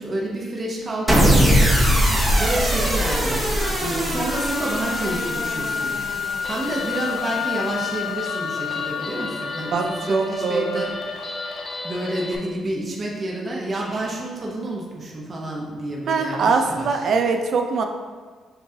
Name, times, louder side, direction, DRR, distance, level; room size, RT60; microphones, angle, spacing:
voice 1, 0.0-1.7 2.3-6.0 6.4-10.9 11.8-17.0, right 1 dB, 35° right, -3 dB, 0.9 m, -29 dB
sound 1, 1.1-7.4, equal, 10° right, 0.9 m, -21 dB
sound 2, 3.6-11.6, left 7 dB, 60° left, 0.3 m, -31 dB
Guitar, 6.4-12.4, left 1 dB, 40° left, 0.7 m, -34 dB
voice 2, 9.7-10.8 16.1-17.8, right 4 dB, 65° right, 5 dB, 0.4 m, -22 dB
5.8 x 3.1 x 2.8 m, 1.5 s
cardioid pair, 90°, 0 cm